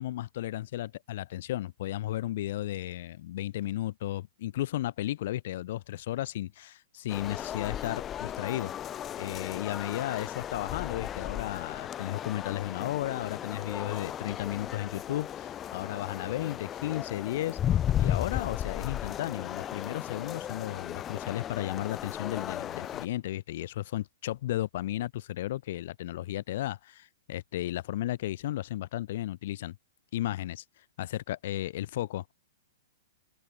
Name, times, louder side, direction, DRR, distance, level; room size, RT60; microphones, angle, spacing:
voice 1, 0.0-8.7 9.2-17.6 18.0-29.8 30.1-30.6 31.0-32.3, left 14 dB, 55° left, 3.0 m, -34 dB
sound 1, 7.1-23.1, left 10 dB, 20° left, 2.3 m, -35 dB
open air
hypercardioid pair, 155°, 0 cm